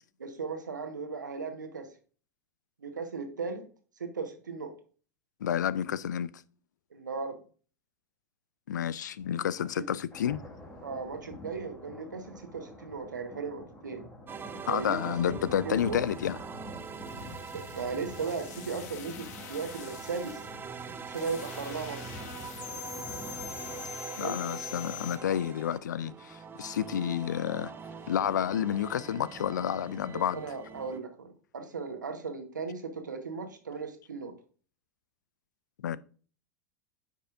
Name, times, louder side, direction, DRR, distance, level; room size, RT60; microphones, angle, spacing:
voice 1, 0.2-1.9 2.8-3.6 4.0-4.7 6.9-7.4 10.8-14.0 14.6-16.0 17.5-20.4 21.1-22.2 24.2-24.4 30.3-34.3 35.9-36.0, right 5 dB, 85° right, 1.3 m, -37 dB
voice 2, 5.4-6.3 8.7-10.4 14.7-16.4 24.2-27.7 28.1-30.4 35.8-36.0, left 9 dB, 75° left, 0.4 m, -30 dB
sound 1, 10.1-23.9, left 1 dB, 15° left, 1.9 m, -47 dB
sound 2, 14.3-31.0, right 6 dB, 20° right, 0.6 m, -44 dB
sound 3, 16.7-25.2, left 10 dB, 60° left, 0.9 m, -45 dB
9.6 x 5.4 x 2.6 m
hypercardioid pair, 90°, 10 cm